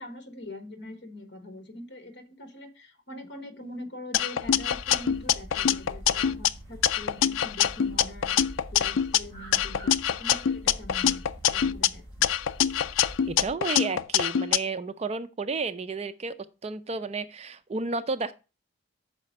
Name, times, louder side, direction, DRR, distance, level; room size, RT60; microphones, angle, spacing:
voice 1, 0.0-8.4 8.7-11.2 11.5-12.3, left 1 dB, 60° left, 1.2 m, -43 dB
sound 1, 4.1-6.5 6.8-9.2 9.5-11.9 12.2-14.6, left 9 dB, 75° left, 0.3 m, -24 dB
sound 2, 4.4-13.5, equal, 15° left, 4.1 m, -45 dB
voice 2, 13.2-16.3 16.6-18.3, right 4 dB, 30° right, 0.4 m, -32 dB
5.8 x 4.3 x 6.3 m
head